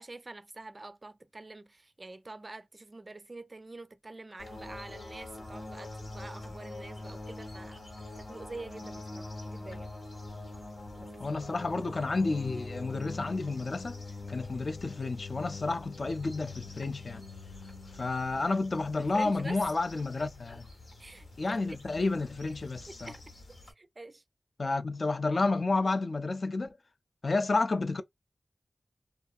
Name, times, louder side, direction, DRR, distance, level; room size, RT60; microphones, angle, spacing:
voice 1, 0.0-7.8 8.2-9.9 11.0-11.1 19.0-19.6 21.0-21.3 21.6-21.8 23.0-23.2 23.5-24.2, right 2 dB, 40° right, 0.4 m, -46 dB
sound 1, 4.4-23.7, left 2 dB, 90° left, 1.0 m, -44 dB
voice 2, 11.2-14.0 14.3-17.2 17.9-20.7 21.4-23.1 24.6-26.8 27.2-28.0, left 3 dB, 55° left, 0.4 m, -30 dB
2.6 x 2.4 x 2.3 m
wide cardioid pair, 70°, 0 cm